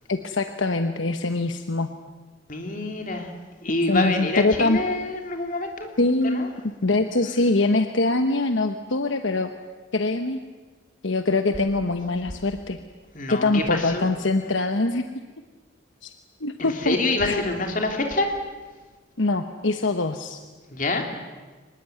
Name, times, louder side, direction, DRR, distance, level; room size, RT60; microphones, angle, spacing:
voice 1, 0.1-1.9 3.9-4.8 6.0-6.5 6.8-9.5 9.9-10.4 11.0-12.8 13.3-15.0 16.0-16.1 16.4-17.0 17.3-17.4 19.2-20.4, left 2 dB, 70° left, 7 dB, 1.1 m, -23 dB
voice 2, 2.5-3.3 3.6-5.9 6.2-6.5 13.1-14.1 16.6-18.3 20.7-21.0, left 2 dB, 40° left, 3 dB, 3.2 m, -26 dB
24.0 x 20.5 x 9.4 m, 1.3 s
head